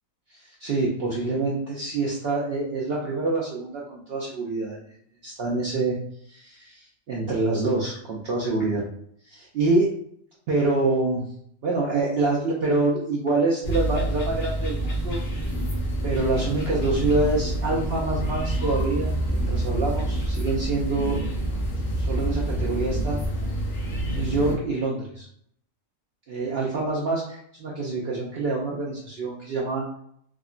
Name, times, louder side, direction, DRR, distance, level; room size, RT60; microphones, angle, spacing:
voice 1, 0.3-4.8 5.2-6.0 6.3-8.8 9.3-10.0 10.5-11.2 11.6-15.2 16.0-21.2 22.0-23.2 24.1-25.3 26.3-29.8, right 3 dB, 65° right, -4 dB, 0.6 m, -26 dB
sound 1, 13.6-24.6, right 1 dB, 50° left, 0.9 m, -27 dB
3.5 x 2.0 x 2.4 m, 0.67 s
omnidirectional pair, 1.4 m